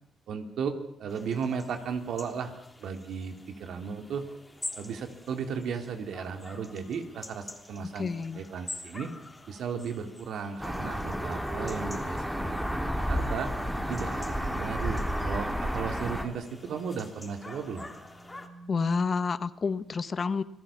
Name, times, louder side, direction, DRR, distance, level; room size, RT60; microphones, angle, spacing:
voice 1, 0.3-2.5 2.8-4.3 4.8-9.1 9.5-13.5 13.9-17.9, right 6 dB, 70° right, 6 dB, 3.3 m, -35 dB
sound 1, 1.1-18.5, left 2 dB, 15° left, 3.3 m, -47 dB
voice 2, 7.9-8.4 18.7-20.4, left 5 dB, 40° left, 14 dB, 1.1 m, -29 dB
sound 2, 10.6-16.2, equal, ahead, 2.7 m, -31 dB
sound 3, 17.5-19.1, right 2 dB, 45° right, 2.2 m, -50 dB
27.5 x 18.5 x 7.3 m, 0.73 s
cardioid pair, 90°, 0 cm